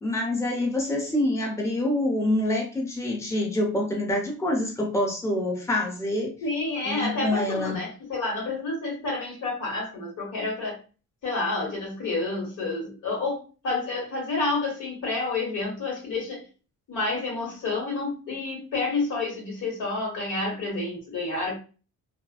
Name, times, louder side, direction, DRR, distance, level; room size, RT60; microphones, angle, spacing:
voice 1, 0.0-6.3 6.8-7.8, left 1 dB, 10° left, 1 dB, 0.7 m, -26 dB
voice 2, 6.4-10.8 11.2-16.4 16.9-21.6, left 3 dB, 85° left, -1 dB, 1.4 m, -29 dB
2.4 x 2.2 x 2.4 m, 0.34 s
cardioid pair, 90°, 30 cm